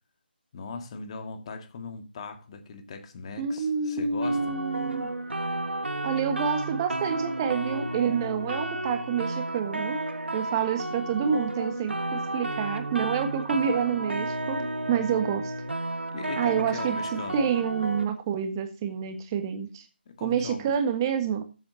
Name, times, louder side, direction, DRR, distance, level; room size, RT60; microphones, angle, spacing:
voice 1, 0.5-4.6 16.1-17.5 20.1-20.7, left 4 dB, 35° left, 1.9 m, -39 dB
voice 2, 3.4-5.1 6.0-10.0 10.3-15.5 16.4-19.8 20.2-21.4, right 7 dB, 20° right, 1.4 m, -28 dB
sound 1, 4.2-18.1, right 1 dB, 85° right, 1.4 m, -32 dB
13.5 x 8.0 x 2.8 m
figure-of-eight pair, 155°, 6 cm